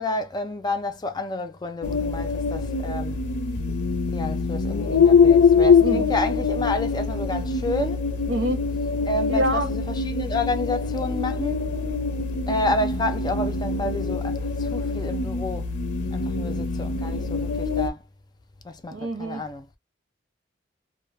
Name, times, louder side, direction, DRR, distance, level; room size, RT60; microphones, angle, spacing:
voice 1, 0.0-3.2 4.1-8.0 9.1-11.8 12.5-15.7 16.1-18.0 18.6-19.7, left 2 dB, 25° left, 0.4 m, -30 dB
sound 1, 1.8-17.9, left 5 dB, 80° left, 0.6 m, -23 dB
voice 2, 5.8-6.1 8.3-8.6 9.3-9.7 18.9-19.4, equal, 75° right, 0.8 m, -26 dB
2.1 x 2.1 x 3.1 m
head